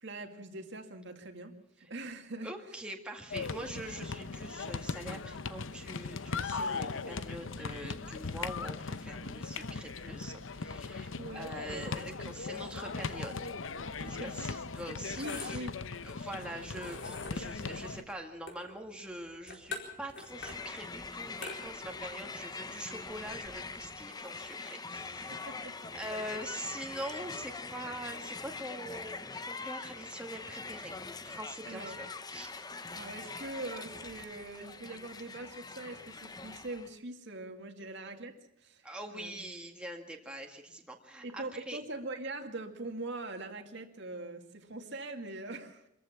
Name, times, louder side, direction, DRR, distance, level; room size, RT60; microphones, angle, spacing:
voice 1, 0.0-2.5 11.1-11.9 12.1-12.3 14.1-14.5 15.2-15.8 25.3-25.7 26.2-26.4 31.7-32.0 32.9-39.4 41.2-45.8, right 2 dB, 60° right, 4 dB, 2.2 m, -42 dB
voice 2, 2.4-13.5 14.0-15.6 16.0-30.9 31.2-32.5 37.8-37.9 38.8-41.8, right 1 dB, 5° right, 1 dB, 2.0 m, -44 dB
sound 1, 3.3-18.0, left 4 dB, 80° left, 0.8 m, -39 dB
sound 2, 15.0-23.8, left 3 dB, 65° left, 4.4 m, -47 dB
Crowd, 20.3-37.0, left 4 dB, 20° left, 0.8 m, -43 dB
25.5 x 14.5 x 7.3 m, 0.79 s
head